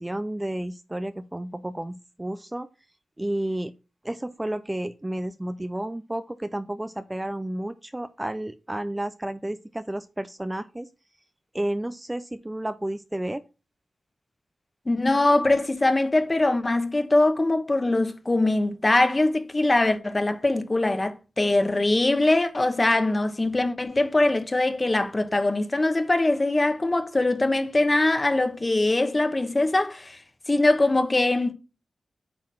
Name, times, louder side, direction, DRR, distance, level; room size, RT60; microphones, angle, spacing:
voice 1, 0.0-2.7 3.2-3.7 4.0-10.9 11.5-13.4, right 1 dB, 15° right, 0.4 m, -31 dB
voice 2, 14.9-30.2 30.5-31.5, left 2 dB, 25° left, 1.0 m, -22 dB
8.6 x 3.9 x 6.0 m
cardioid pair, 75°, 0 cm